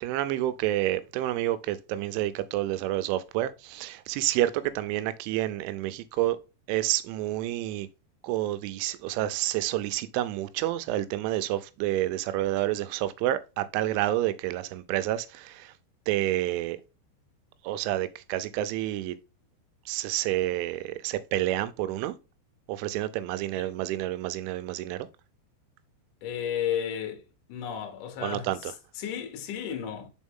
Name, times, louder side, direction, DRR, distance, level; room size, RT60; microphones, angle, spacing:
voice 1, 0.0-6.4 6.7-7.9 8.2-15.7 16.1-16.8 17.6-19.2 19.9-22.2 22.7-25.1 28.2-28.7, right 14 dB, 90° right, 3.0 m, -29 dB
voice 2, 26.2-27.2 27.5-30.1, left 9 dB, 65° left, 2.2 m, -33 dB
6.2 x 4.4 x 3.6 m
omnidirectional pair, 5.4 m